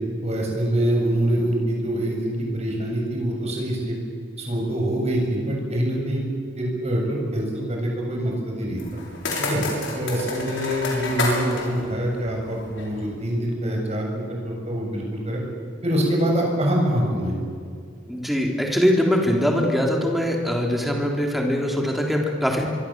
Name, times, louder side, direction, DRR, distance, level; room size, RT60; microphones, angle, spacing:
voice 1, 0.2-4.0 4.4-6.3 6.6-8.8 9.4-9.6 9.9-15.4 15.8-17.3, equal, 35° right, -1 dB, 7.6 m, -25 dB
sound 1, 8.8-13.0, left 2 dB, 65° left, 6.5 m, -30 dB
voice 2, 18.1-22.7, equal, ahead, 0 dB, 3.6 m, -22 dB
24.5 x 24.0 x 7.7 m, 2.2 s
head